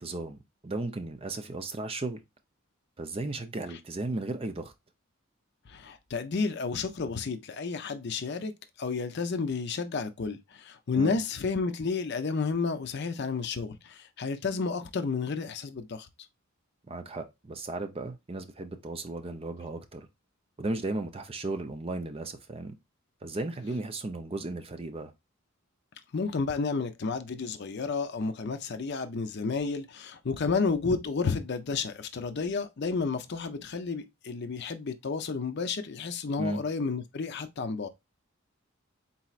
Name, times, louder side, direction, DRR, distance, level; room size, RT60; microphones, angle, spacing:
voice 1, 0.0-2.2 3.0-4.7 10.9-11.2 16.9-20.1 20.6-22.7 23.2-25.1 36.4-36.6, right 2 dB, 25° right, 0.5 m, -35 dB
voice 2, 5.7-8.5 8.8-16.1 26.1-37.9, left 4 dB, 50° left, 0.5 m, -31 dB
4.3 x 4.0 x 2.4 m
head